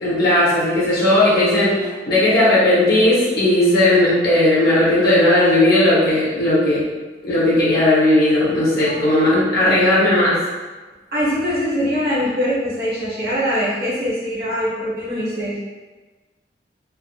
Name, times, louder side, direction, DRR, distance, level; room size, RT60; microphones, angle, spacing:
voice 1, 0.0-6.9 7.2-10.3, left 1 dB, 60° left, -8 dB, 0.9 m, -16 dB
voice 2, 11.1-15.6, equal, 55° right, -9 dB, 0.9 m, -22 dB
3.5 x 2.1 x 2.3 m, 1.3 s
head